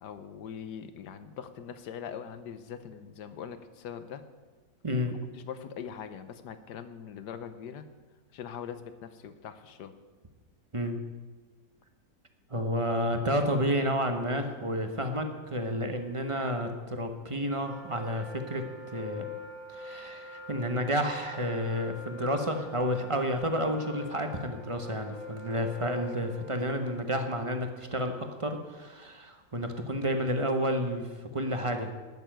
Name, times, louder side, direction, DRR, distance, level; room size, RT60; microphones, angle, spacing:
voice 1, 0.0-4.2 4.9-5.0 5.4-7.9 8.3-9.9 12.6-12.7, left 8 dB, 75° left, 11 dB, 1.4 m, -42 dB
voice 2, 4.8-5.2 10.7-11.0 12.5-19.2 19.7-31.9, equal, 25° right, 6 dB, 0.8 m, -30 dB
Wind instrument woodwind instrument, 17.3-27.2, left 2 dB, 10° left, 1.9 m, -44 dB
12.0 x 6.9 x 9.0 m, 1.3 s
omnidirectional pair, 1.8 m